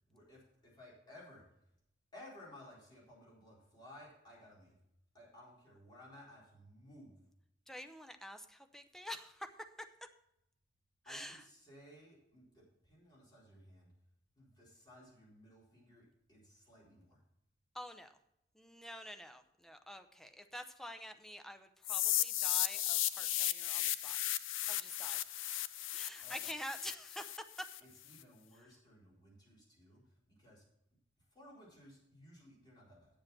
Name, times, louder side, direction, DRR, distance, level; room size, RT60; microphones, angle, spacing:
voice 1, 0.1-1.4 2.1-4.8 5.1-7.2 11.0-13.9 14.4-17.2 26.2-26.5 27.8-30.0 30.3-30.6 31.3-33.1, left 1 dB, 25° left, -6 dB, 4.2 m, -58 dB
voice 2, 7.7-9.5 11.1-11.4 17.7-18.1 18.5-24.2 24.7-25.2 25.9-27.7, equal, ahead, 7 dB, 0.6 m, -48 dB
sound 1, 21.8-27.8, left 13 dB, 80° left, 0.5 m, -35 dB
8.9 x 7.4 x 5.9 m, 0.82 s
head